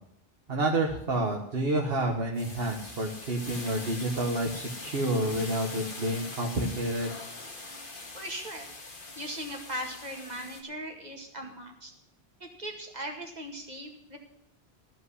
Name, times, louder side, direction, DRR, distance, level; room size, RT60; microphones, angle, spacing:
voice 1, 0.5-7.1, right 1 dB, 70° right, 1 dB, 1.5 m, -29 dB
sound 1, 0.9-1.2 1.6-10.6, left 2 dB, 55° left, 1.8 m, -43 dB
voice 2, 8.1-8.7 9.2-11.9 12.4-14.2, right 1 dB, 45° right, 2 dB, 2.2 m, -39 dB
15.0 x 5.6 x 9.7 m, 0.76 s
omnidirectional pair, 1.0 m